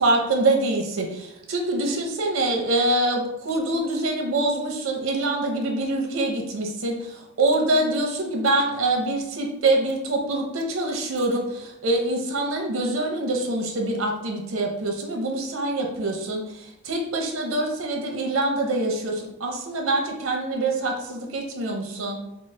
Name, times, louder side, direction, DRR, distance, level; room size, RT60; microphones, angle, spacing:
voice 1, 0.0-22.2, right 2 dB, 80° right, 1 dB, 0.7 m, -25 dB
3.8 x 2.0 x 3.2 m, 0.88 s
head